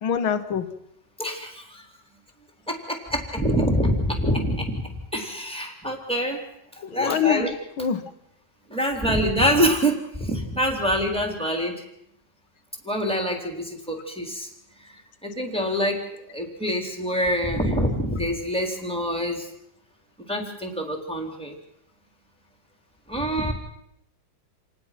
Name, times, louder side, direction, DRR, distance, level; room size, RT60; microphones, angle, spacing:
voice 1, 0.0-0.7 6.8-8.1, left 7 dB, 90° left, 10 dB, 2.2 m, -25 dB
voice 2, 1.2-1.8 2.7-6.4 6.8-7.5 8.7-11.8 12.8-14.5 14.8-14.9 15.2-16.0 16.3-19.5 20.3-21.6 23.1-23.5, equal, 5° left, 2 dB, 3.6 m, -25 dB
28.0 x 19.5 x 5.9 m, 0.76 s
omnidirectional pair, 2.1 m